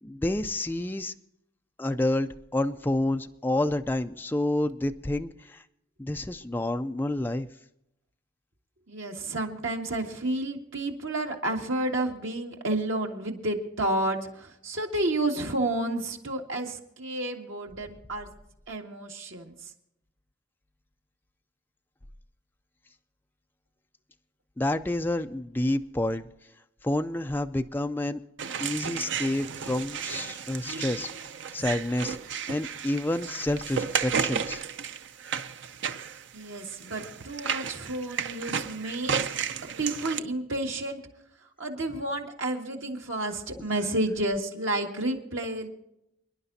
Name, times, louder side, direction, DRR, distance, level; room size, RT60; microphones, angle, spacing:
voice 1, 0.0-1.1 1.8-5.6 6.0-7.5 24.6-26.3 26.8-28.2 28.6-31.1 31.5-32.2 32.5-34.6 43.6-43.7, left 1 dB, 10° left, 7 dB, 0.4 m, -29 dB
voice 2, 8.9-18.3 18.7-19.5 36.3-39.3 39.8-41.0 41.6-45.7, right 1 dB, 80° right, 1 dB, 2.0 m, -31 dB
sound 1, 28.4-40.2, right 7 dB, 65° right, 0.6 m, -33 dB
29.0 x 10.5 x 2.7 m, 0.81 s
head